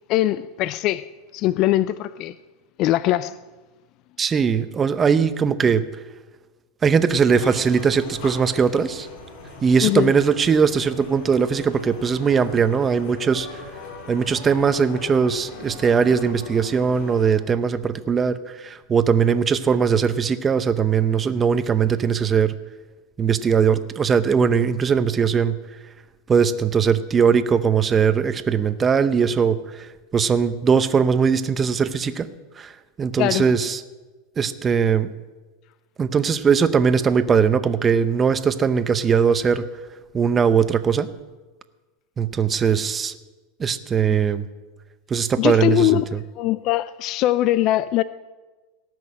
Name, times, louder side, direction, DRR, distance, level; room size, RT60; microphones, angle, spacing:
voice 1, 0.1-1.1 1.3-2.3 2.8-3.4 9.8-10.1 33.2-33.5 44.1-44.2 45.4-46.1 46.4-48.0, left 15 dB, 45° left, 0.4 m, -21 dB
voice 2, 4.2-5.8 6.8-9.1 9.6-13.6 14.1-22.5 23.2-25.6 26.3-32.3 32.6-32.7 33.0-33.8 34.4-35.1 36.0-39.6 40.1-41.1 42.2-43.2 43.6-44.5 45.1-46.2, right 6 dB, 20° right, 0.7 m, -20 dB
sound 1, 7.1-17.3, left 2 dB, 70° left, 5.1 m, -40 dB
18.0 x 6.2 x 8.6 m
supercardioid pair, 130°, 0 cm